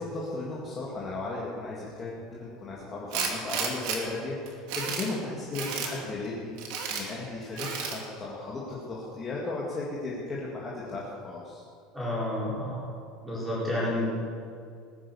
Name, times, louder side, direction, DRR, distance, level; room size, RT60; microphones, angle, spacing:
voice 1, 0.0-11.6, left 2 dB, 20° left, -5 dB, 2.1 m, -36 dB
Tools, 3.1-4.0 4.5-5.1 5.5-5.9 6.6-7.0 7.6-8.0, right 6 dB, 55° right, 2.7 m, -32 dB
voice 2, 11.9-12.8 13.2-14.1, left 1 dB, 5° right, -8 dB, 5.2 m, -30 dB
19.5 x 10.0 x 7.0 m, 2.4 s
cardioid pair, 175°, 0 cm